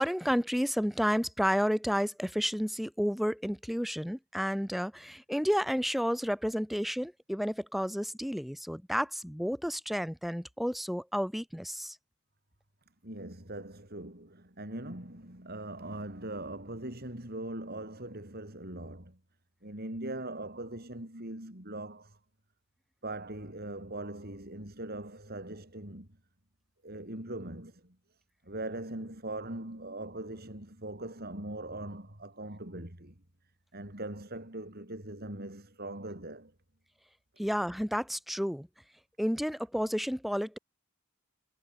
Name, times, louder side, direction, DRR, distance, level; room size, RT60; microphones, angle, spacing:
voice 1, 0.0-12.0 37.4-38.7 39.2-40.6, equal, ahead, 2.5 m, -31 dB
voice 2, 13.0-19.2 19.6-22.2 23.0-26.1 26.8-28.0 28.4-33.2 33.7-36.5, right 1 dB, 50° right, 5.3 m, -41 dB
head